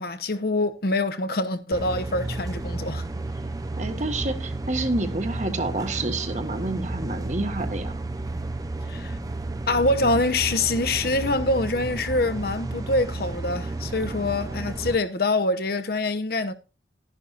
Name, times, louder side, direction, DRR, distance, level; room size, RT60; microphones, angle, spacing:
voice 1, 0.0-3.1 8.9-9.2 9.7-16.5, left 2 dB, 55° left, 1.0 m, -25 dB
sound 1, 1.7-15.0, right 2 dB, 20° right, 0.7 m, -32 dB
voice 2, 3.8-8.0, right 2 dB, 40° right, 1.5 m, -28 dB
12.5 x 10.5 x 2.5 m
head